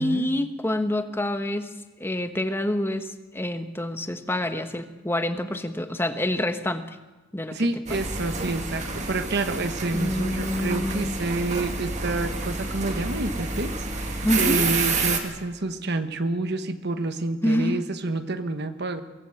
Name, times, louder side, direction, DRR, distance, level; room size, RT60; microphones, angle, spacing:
voice 1, 0.0-1.7 2.0-7.0 7.3-8.0 9.9-11.2 14.2-14.6 17.4-17.8, left 1 dB, 10° left, 8 dB, 1.2 m, -27 dB
voice 2, 7.5-19.0, right 2 dB, 50° right, 9 dB, 1.2 m, -28 dB
sound 1, 7.9-15.2, right 3 dB, 35° right, 2.3 m, -29 dB
23.5 x 17.5 x 7.8 m, 1.2 s
head